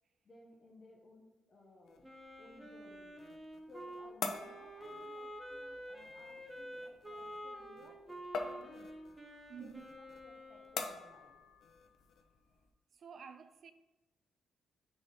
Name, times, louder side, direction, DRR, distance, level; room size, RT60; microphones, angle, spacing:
voice 1, 0.2-2.1 2.4-3.1 3.7-8.9 9.6-11.4, left 2 dB, 30° left, 1.0 m, -60 dB
sound 1, 1.9-12.7, left 5 dB, 65° left, 0.7 m, -47 dB
Wind instrument woodwind instrument, 2.0-10.9, equal, 10° right, 0.9 m, -49 dB
voice 2, 9.5-9.9 12.5-12.6 12.9-13.7, right 7 dB, 50° right, 0.3 m, -52 dB
5.6 x 4.1 x 5.3 m
cardioid pair, 145°, 0 cm